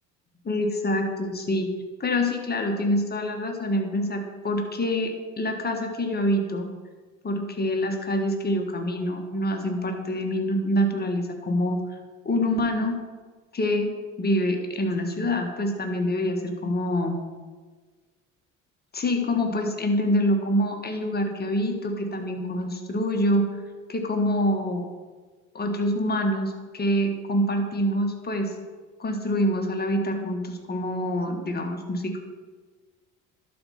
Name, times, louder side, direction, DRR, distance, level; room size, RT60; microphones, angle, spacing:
voice 1, 0.5-1.7 2.0-6.7 7.2-11.8 12.3-13.0 13.5-13.9 14.2-17.2 18.9-23.5 23.9-24.9 25.6-28.5 29.0-32.2, equal, 25° left, 3 dB, 1.6 m, -26 dB
11.5 x 4.4 x 5.6 m, 1.4 s
hypercardioid pair, 60°, 38 cm